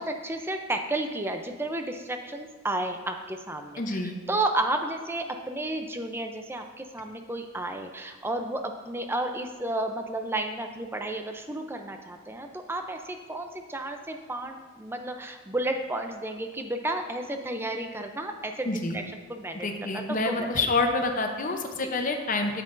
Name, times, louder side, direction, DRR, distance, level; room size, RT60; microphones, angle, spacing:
voice 1, 0.0-20.7 21.8-21.9, right 1 dB, 10° right, 5 dB, 0.5 m, -32 dB
voice 2, 3.8-4.2 18.6-19.0 19.5-22.6, left 3 dB, 40° left, 4 dB, 0.8 m, -27 dB
9.3 x 8.4 x 2.6 m, 1.3 s
head